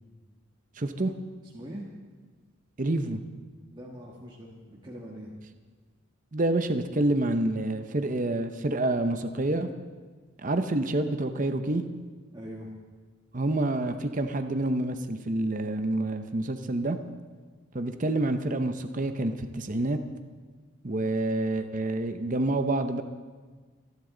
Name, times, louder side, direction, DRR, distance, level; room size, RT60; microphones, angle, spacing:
voice 1, 0.8-1.1 2.8-3.2 6.3-9.7 10.4-11.8 13.3-17.0 17.7-20.0 20.8-23.0, right 2 dB, 40° right, 8 dB, 0.7 m, -28 dB
voice 2, 1.5-1.9 3.7-5.3 12.3-12.7, equal, 20° right, -4 dB, 1.6 m, -42 dB
26.5 x 11.5 x 3.9 m, 1.4 s
head